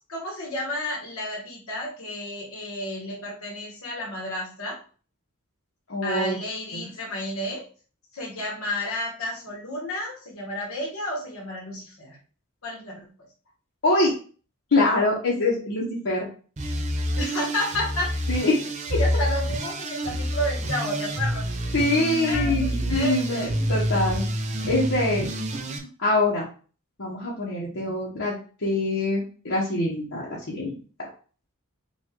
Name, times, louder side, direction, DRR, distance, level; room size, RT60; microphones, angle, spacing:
voice 1, 0.1-4.8 6.0-7.6 8.1-12.2 12.6-13.0 17.2-18.1 19.0-21.7 22.0-23.7, left 1 dB, 80° left, -2 dB, 1.4 m, -31 dB
voice 2, 5.9-6.4 6.7-6.9 13.8-14.1 14.7-16.3 18.3-19.0 21.7-24.3 24.7-25.3 26.0-26.5 27.0-31.1, left 2 dB, 65° left, -5 dB, 1.1 m, -24 dB
sound 1, 16.6-25.8, equal, 30° right, 0.5 m, -28 dB
5.2 x 2.5 x 3.7 m, 0.39 s
head